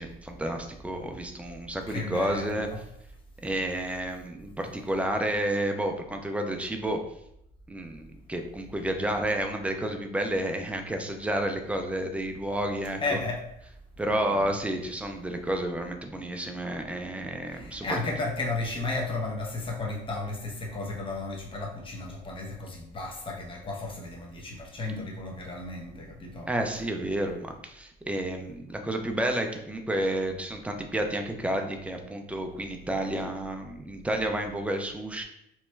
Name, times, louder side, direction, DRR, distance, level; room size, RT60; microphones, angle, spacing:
voice 1, 0.0-2.7 3.4-7.0 7.7-13.2 14.0-18.0 26.5-35.2, right 1 dB, 10° right, 4 dB, 0.4 m, -30 dB
voice 2, 1.9-2.8 13.0-13.4 14.0-14.6 17.5-26.5, left 2 dB, 30° left, 0 dB, 0.7 m, -34 dB
3.0 x 2.2 x 3.1 m, 0.78 s
cardioid pair, 110°, 17 cm